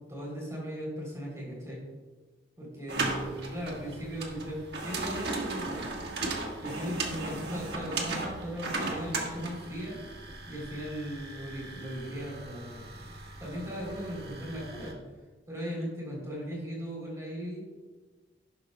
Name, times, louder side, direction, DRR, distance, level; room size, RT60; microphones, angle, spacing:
voice 1, 0.1-1.8 2.6-5.9 6.6-10.0 10.5-13.1 13.4-15.0 15.5-17.6, equal, 15° right, -3 dB, 3.2 m, -38 dB
sound 1, 2.9-14.9, right 3 dB, 65° right, 1.5 m, -37 dB
11.5 x 10.5 x 2.2 m, 1.3 s
head